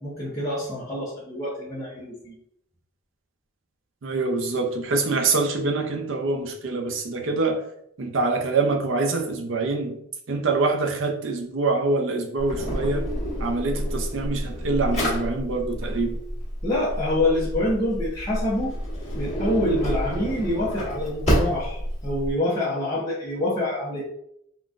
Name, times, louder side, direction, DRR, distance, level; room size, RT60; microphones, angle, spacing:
voice 1, 0.0-2.3 16.6-18.7 19.1-24.1, left 1 dB, 15° left, -9 dB, 0.6 m, -26 dB
voice 2, 4.0-7.6 8.0-9.9 10.3-13.1 13.4-16.2, right 3 dB, 65° right, 4 dB, 0.5 m, -25 dB
Drawer open or close, 12.4-22.3, equal, 30° left, 1.1 m, -28 dB
3.7 x 2.2 x 2.4 m, 0.74 s
head